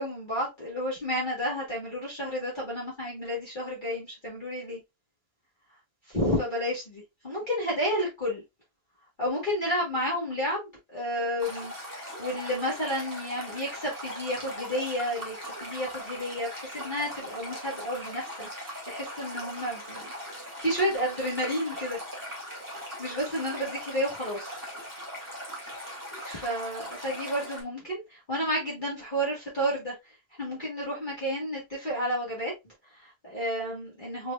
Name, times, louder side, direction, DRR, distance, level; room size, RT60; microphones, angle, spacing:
voice 1, 0.0-4.8 6.1-8.4 9.2-22.0 23.0-24.6 26.2-34.3, equal, 30° left, 1.8 m, -31 dB
Stream, 11.4-27.6, equal, 10° right, 2.0 m, -40 dB
4.7 x 3.8 x 2.4 m
omnidirectional pair, 1.7 m